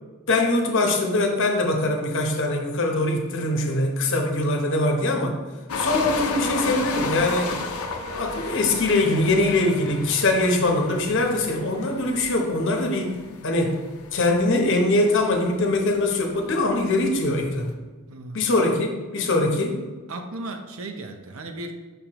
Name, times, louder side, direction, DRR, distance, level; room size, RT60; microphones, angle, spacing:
voice 1, 0.3-5.4 5.8-7.5 8.1-13.1 13.4-13.8 14.1-17.7 18.3-19.8, left 2 dB, 60° left, 2 dB, 0.9 m, -22 dB
sound 1, 5.7-17.7, left 3 dB, 80° left, 0.6 m, -33 dB
voice 2, 18.1-18.5 20.1-21.8, right 2 dB, 65° right, 5 dB, 0.6 m, -35 dB
6.3 x 5.2 x 3.0 m, 1.3 s
head